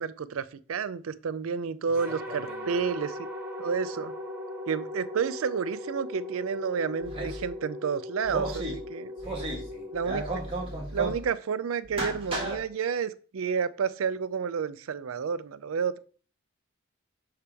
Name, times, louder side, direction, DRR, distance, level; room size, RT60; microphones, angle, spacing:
voice 1, 0.0-2.4 2.7-3.1 3.6-4.1 4.7-9.1 9.9-10.2 10.9-16.0, right 6 dB, 90° right, 15 dB, 0.5 m, -30 dB
voice 2, 1.8-2.9 9.2-9.9, left 1 dB, 40° left, -5 dB, 3.2 m, -47 dB
sound 1, 1.9-11.3, left 1 dB, 10° right, 1.3 m, -39 dB
sound 2, 7.0-7.5 8.2-8.7 9.2-9.7 9.9-11.2 11.8-12.6, right 2 dB, 25° right, 1.8 m, -33 dB
6.8 x 5.6 x 3.4 m, 0.40 s
head